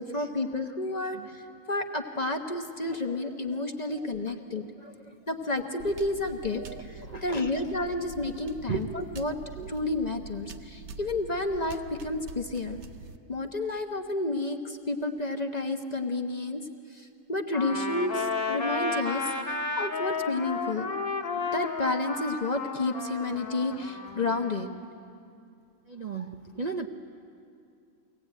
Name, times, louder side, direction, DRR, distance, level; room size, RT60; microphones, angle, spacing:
voice 1, 0.0-4.6 5.3-9.4 9.7-12.8 13.3-16.6 16.9-20.9 21.5-24.7, left 2 dB, 35° left, 4 dB, 0.9 m, -31 dB
sound 1, 5.8-13.2, right 4 dB, 60° right, 1.0 m, -45 dB
voice 2, 7.1-7.5 8.7-8.8 9.6-9.7 25.9-26.9, right 5 dB, 40° right, 2 dB, 0.7 m, -35 dB
Trumpet, 17.5-24.6, left 4 dB, 65° left, 1.8 m, -33 dB
23.5 x 18.0 x 9.0 m, 2.5 s
omnidirectional pair, 1.5 m